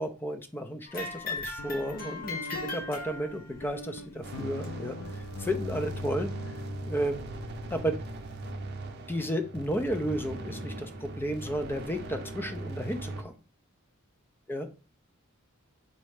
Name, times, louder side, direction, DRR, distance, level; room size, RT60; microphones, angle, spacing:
voice 1, 0.0-6.6 6.9-7.2 7.7-8.0 9.1-13.3 14.5-14.7, equal, 10° left, 7 dB, 0.5 m, -33 dB
sound 1, 0.9-3.7 4.6-4.7 5.6-5.7 6.5-6.6, left 3 dB, 40° left, 1.2 m, -38 dB
Guitar, 1.6-11.1, left 3 dB, 75° left, 0.5 m, -44 dB
sound 2, 4.2-13.2, right 2 dB, 50° right, 0.6 m, -40 dB
4.2 x 3.7 x 3.4 m, 0.34 s
head